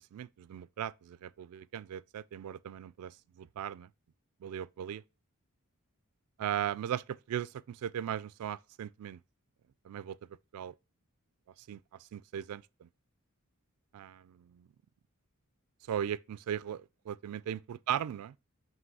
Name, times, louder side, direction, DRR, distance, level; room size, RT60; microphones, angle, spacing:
voice 1, 0.0-3.9 4.4-5.0 6.4-9.2 9.8-10.2 10.5-10.7 11.7-12.9 13.9-14.7 15.9-18.3, right 9 dB, 85° right, 0.3 m, -38 dB
7.5 x 3.1 x 4.7 m
head